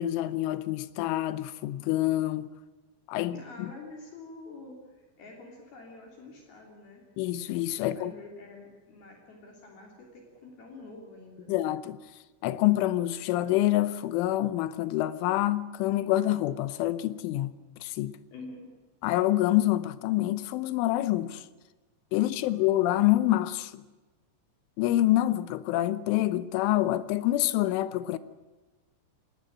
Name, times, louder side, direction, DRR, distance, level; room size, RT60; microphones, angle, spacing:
voice 1, 0.0-2.5 3.1-3.7 7.2-8.1 11.5-12.0 12.4-17.5 17.8-18.2 19.0-21.5 22.1-23.8 24.8-28.2, left 15 dB, 85° left, 3.4 m, -26 dB
voice 2, 3.3-7.0 7.8-11.5 18.3-18.7 22.4-22.5, left 2 dB, 55° left, 4.9 m, -47 dB
23.0 x 19.5 x 8.8 m
omnidirectional pair, 5.4 m